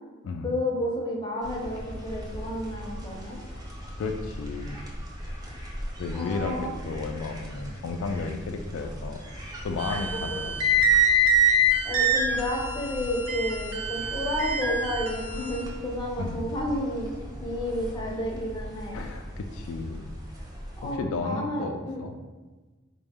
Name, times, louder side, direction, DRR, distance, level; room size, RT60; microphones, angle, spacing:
voice 1, 0.4-3.4 6.1-6.7 9.9-10.0 10.3-10.4 11.8-17.1 17.4-19.0 20.8-22.0, left 1 dB, 20° left, -2 dB, 0.6 m, -31 dB
sound 1, 1.4-20.9, equal, 20° right, 0.6 m, -39 dB
voice 2, 4.0-4.8 6.0-6.6 6.8-9.2 9.6-10.8 16.2-16.4 18.9-20.1 20.9-22.2, left 3 dB, 80° left, 5 dB, 0.3 m, -33 dB
sound 2, 9.8-15.6, right 1 dB, 85° right, 0.6 m, -25 dB
4.2 x 2.1 x 3.5 m, 1.3 s
head